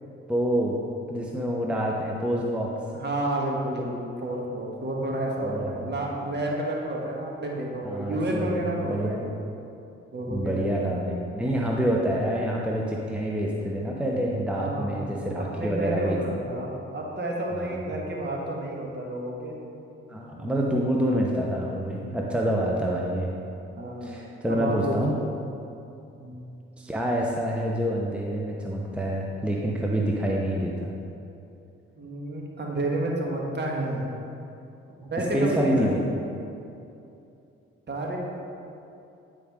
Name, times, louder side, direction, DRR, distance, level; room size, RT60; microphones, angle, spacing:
voice 1, 0.3-0.7 1.1-2.7 5.4-5.9 7.8-9.2 10.3-16.2 16.5-16.6 17.5-17.9 20.1-23.3 24.0-25.1 26.8-30.9 35.3-36.0, equal, 5° right, -2 dB, 0.8 m, -27 dB
voice 2, 2.9-9.4 10.1-10.9 14.5-15.1 15.3-19.6 20.4-20.8 23.7-24.2 24.5-25.2 26.1-26.5 32.0-34.1 35.0-36.1 37.9-38.2, right 1 dB, 35° right, -2 dB, 1.6 m, -30 dB
9.0 x 4.9 x 3.6 m, 2.7 s
supercardioid pair, 55°, 29 cm